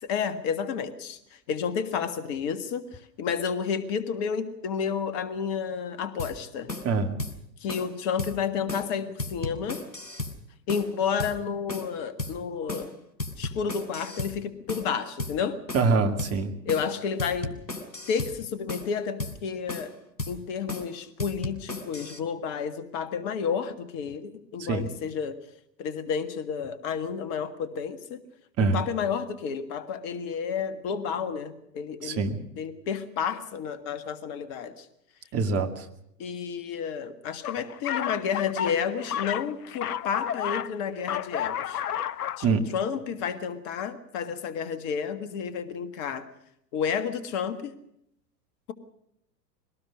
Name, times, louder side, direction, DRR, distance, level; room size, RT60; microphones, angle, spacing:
voice 1, 0.0-6.7 7.6-9.8 10.7-12.9 13.4-15.6 16.7-17.6 18.1-19.9 20.3-25.4 25.8-28.2 28.6-32.2 32.6-34.9 36.2-41.8 42.4-46.3 46.7-47.7, left 6 dB, 40° left, 12 dB, 1.8 m, -31 dB
sound 1, 6.2-6.4 6.7-6.9 7.2-7.4 7.7-7.9 8.2-8.3 8.7-8.9 9.2-10.4 10.7-10.9 11.2-11.4 11.7-11.9 12.2-12.4 12.7-12.9 13.2-14.4 14.7-14.9 15.2-15.4 15.7-15.9 16.2-16.4 16.7-16.9 17.2-18.4 18.7-18.9 19.2-19.4 19.7-19.9 20.2-20.4 20.7-20.9 21.2-22.2, left 2 dB, 85° left, 3.5 m, -34 dB
voice 2, 6.8-7.2 15.7-16.5 24.6-24.9 28.6-28.8 32.0-32.4 35.3-35.9 42.4-42.6, right 4 dB, 30° right, 6 dB, 2.3 m, -24 dB
sound 2, 37.4-40.7 41.0-42.5, left 10 dB, 65° left, 0.7 m, -31 dB
23.0 x 18.5 x 6.4 m, 0.76 s
figure-of-eight pair, 100°, 50 cm